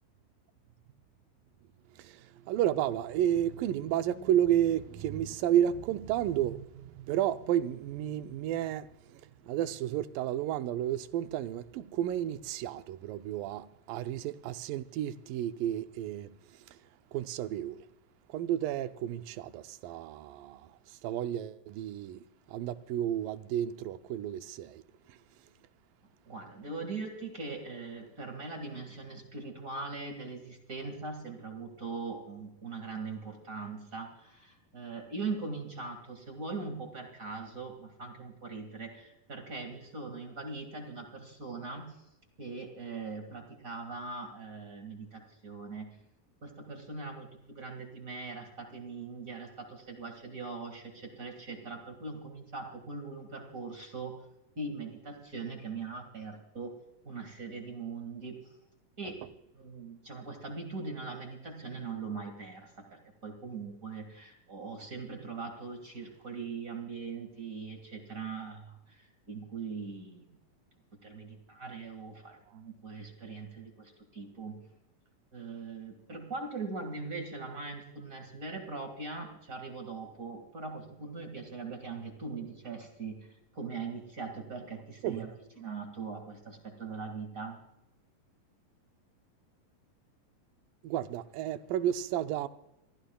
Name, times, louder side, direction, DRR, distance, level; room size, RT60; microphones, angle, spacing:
voice 1, 1.9-16.8 17.1-17.9 18.3-24.8 25.1-25.2 85.0-85.3 90.8-92.5, right 11 dB, 80° right, 2.3 m, -32 dB
voice 2, 26.3-42.0 42.4-45.9 46.4-54.2 54.6-56.7 57.0-58.5 59.0-59.2 59.5-70.3 71.0-74.6 75.3-87.6, right 4 dB, 30° right, 1.7 m, -41 dB
27.0 x 15.0 x 2.3 m
omnidirectional pair, 4.0 m